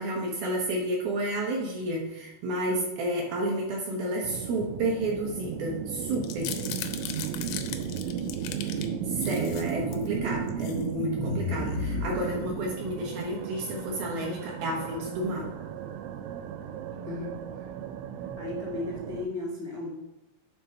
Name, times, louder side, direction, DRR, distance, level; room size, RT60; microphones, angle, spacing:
voice 1, 0.0-6.5 9.1-15.5, right 1 dB, 70° right, -1 dB, 2.5 m, -31 dB
sound 1, 4.2-19.3, right 8 dB, 90° right, 2.9 m, -35 dB
sound 2, 6.1-8.9 9.2-10.1 10.5-10.8 11.2-12.8, left 8 dB, 85° left, 2.3 m, -35 dB
voice 2, 8.0-8.4 17.0-17.7 18.4-19.9, left 3 dB, 40° left, -4 dB, 0.9 m, -37 dB
9.3 x 3.7 x 5.8 m, 0.92 s
omnidirectional pair, 5.2 m